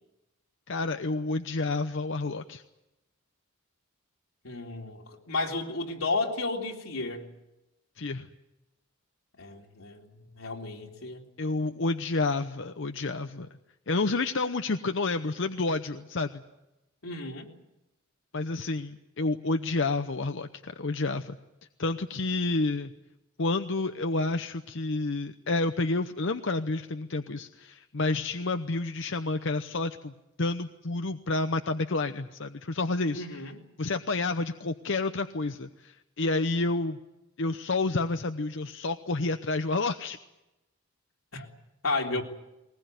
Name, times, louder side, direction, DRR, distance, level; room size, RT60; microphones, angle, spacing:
voice 1, 0.7-2.6 8.0-8.3 11.4-13.5 13.9-16.4 18.3-21.4 21.8-22.9 23.4-33.2 33.8-37.0 37.4-40.2, left 3 dB, 60° left, 8 dB, 0.8 m, -29 dB
voice 2, 4.4-7.3 9.4-11.2 17.0-17.5 33.1-33.6 41.3-41.5 41.8-42.2, left 3 dB, 90° left, 1 dB, 3.6 m, -33 dB
21.5 x 20.0 x 9.3 m, 0.93 s
head